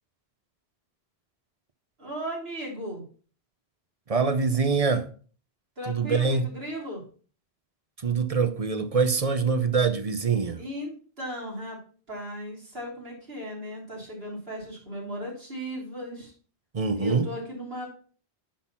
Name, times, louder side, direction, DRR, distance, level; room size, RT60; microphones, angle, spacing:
voice 1, 2.0-3.1 5.8-7.0 10.6-11.8 12.1-16.3 16.9-17.9, equal, 65° right, 3.6 m, -36 dB
voice 2, 4.1-5.1 5.9-6.4 8.0-10.6 16.7-17.3, right 5 dB, 40° right, 0.7 m, -24 dB
10.0 x 4.0 x 5.7 m
omnidirectional pair, 1.1 m